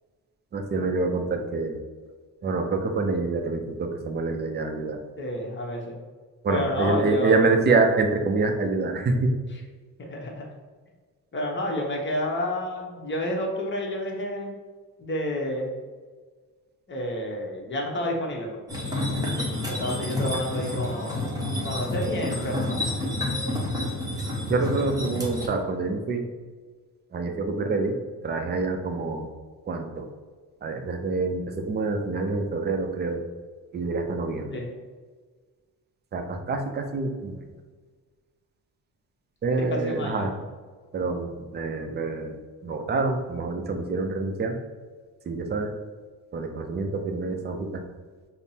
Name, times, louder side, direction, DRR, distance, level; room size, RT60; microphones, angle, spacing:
voice 1, 0.5-1.8 2.4-5.0 6.4-9.3 24.5-26.2 27.1-27.9 28.2-29.3 29.7-30.1 30.6-33.2 33.7-34.6 36.1-37.4 39.4-40.3 40.9-42.4 42.6-44.6 45.3-45.7 46.3-47.8, right 3 dB, 25° right, 5 dB, 0.4 m, -26 dB
voice 2, 5.2-6.0 6.5-7.5 10.0-10.5 11.3-14.5 15.0-15.8 16.9-18.6 19.6-21.2 21.6-22.8 34.5-34.7 39.6-40.3, left 1 dB, 30° left, -1 dB, 0.8 m, -30 dB
sound 1, 18.7-25.5, left 1 dB, 10° right, 0.8 m, -29 dB
5.2 x 2.0 x 2.7 m, 1.4 s
cardioid pair, 105°, 39 cm